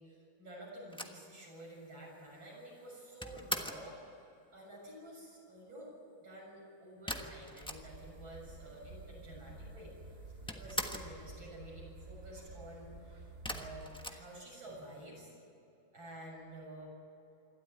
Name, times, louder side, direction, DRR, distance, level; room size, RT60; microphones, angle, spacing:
voice 1, 0.0-4.0 4.5-5.9 6.2-15.3 15.9-16.9, right 1 dB, 80° right, -4 dB, 7.8 m, -50 dB
sound 1, 0.9-3.9 7.1-8.2 8.5-8.6 8.8-9.6 9.9-11.2 13.4-14.9, equal, 5° left, 0.9 m, -42 dB
sound 2, 7.6-14.1, right 2 dB, 35° right, 1.1 m, -51 dB
26.5 x 12.5 x 9.4 m, 2.8 s
omnidirectional pair, 2.1 m